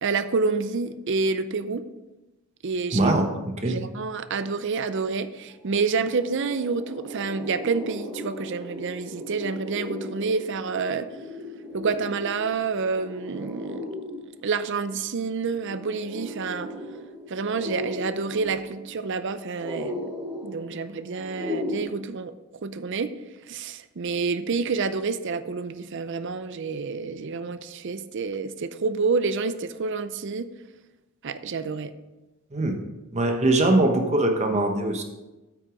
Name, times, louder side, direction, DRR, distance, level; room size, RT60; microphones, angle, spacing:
voice 1, 0.0-1.8 2.6-3.1 3.6-11.1 11.7-13.8 14.4-16.7 17.3-20.1 20.4-22.3 22.6-23.1 23.5-30.5 31.2-31.9, right 4 dB, 55° right, 12 dB, 0.5 m, -28 dB
voice 2, 2.9-3.3 3.6-3.8 32.5-32.7 33.1-35.0, right 2 dB, 30° right, 4 dB, 1.0 m, -21 dB
sound 1, 5.2-5.3 5.6-21.8, left 1 dB, 10° right, 2.1 m, -37 dB
8.6 x 6.3 x 5.1 m, 1.1 s
head